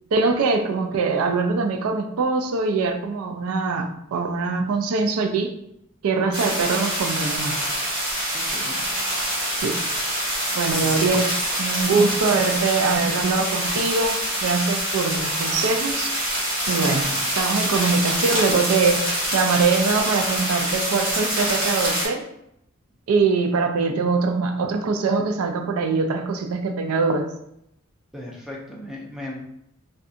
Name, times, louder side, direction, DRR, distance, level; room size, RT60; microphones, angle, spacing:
voice 1, 0.1-5.5 6.0-7.6 9.6-9.7 10.5-16.1 16.7-17.1 17.4-22.2 23.1-27.3, right 4 dB, 85° right, 6 dB, 0.4 m, -23 dB
sound 1, 6.3-22.1, right 1 dB, 55° right, 1.3 m, -25 dB
voice 2, 8.3-8.8 10.8-11.1 16.8-17.2 28.1-29.4, left 1 dB, ahead, -3 dB, 0.5 m, -37 dB
2.7 x 2.2 x 2.4 m, 0.77 s
head